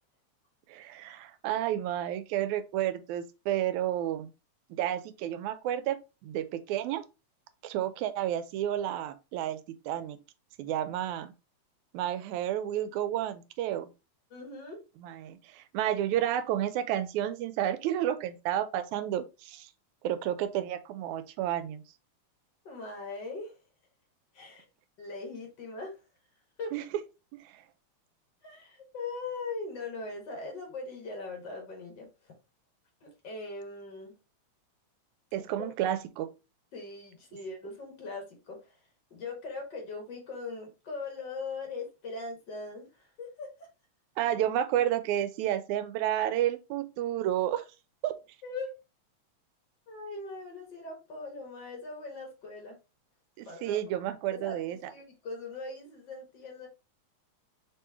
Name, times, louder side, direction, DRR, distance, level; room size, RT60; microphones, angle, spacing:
voice 1, 0.7-4.3 4.7-7.0 7.6-10.2 10.6-11.3 11.9-13.9 15.0-19.7 20.0-21.8 26.7-26.8 27.4-27.6 35.3-36.3 44.2-47.6 48.0-48.2 53.4-54.9, right 11 dB, 85° right, 1.9 m, -31 dB
voice 2, 14.3-14.8 22.6-23.5 24.3-24.6 25.0-26.0 26.6-26.8 28.4-32.3 33.0-34.1 35.4-35.7 36.7-38.8 39.1-43.7 48.4-48.8 49.9-52.8 53.4-53.8 54.3-56.7, left 3 dB, 50° left, 1.5 m, -40 dB
4.5 x 3.0 x 3.4 m
omnidirectional pair, 3.3 m